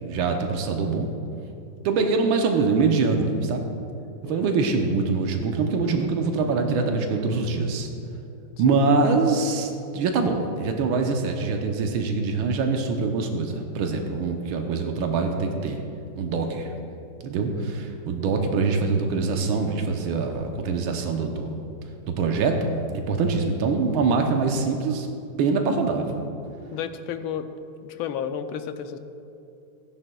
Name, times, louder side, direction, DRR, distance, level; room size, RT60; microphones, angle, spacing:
voice 1, 0.0-1.1 1.9-3.6 4.2-7.9 8.6-15.8 16.2-16.7 17.2-21.5 22.1-22.7 23.1-25.1 25.4-26.2, right 4 dB, 80° right, 3 dB, 1.6 m, -24 dB
voice 2, 4.2-4.5 8.7-8.8 25.4-25.7 26.7-27.5 27.8-29.0, left 8 dB, 85° left, 9 dB, 1.4 m, -32 dB
16.5 x 9.9 x 2.3 m, 2.7 s
omnidirectional pair, 2.2 m